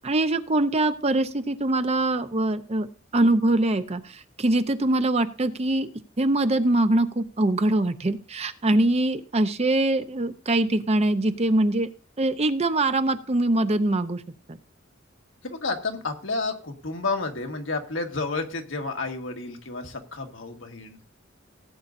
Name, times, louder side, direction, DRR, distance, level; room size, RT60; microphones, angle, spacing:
voice 1, 0.0-2.9 3.1-5.9 6.2-11.9 12.2-14.2 14.5-14.6, right 2 dB, 35° right, 10 dB, 0.7 m, -23 dB
voice 2, 15.4-21.0, left 3 dB, 80° left, 3 dB, 1.6 m, -31 dB
18.0 x 8.5 x 2.6 m, 0.35 s
head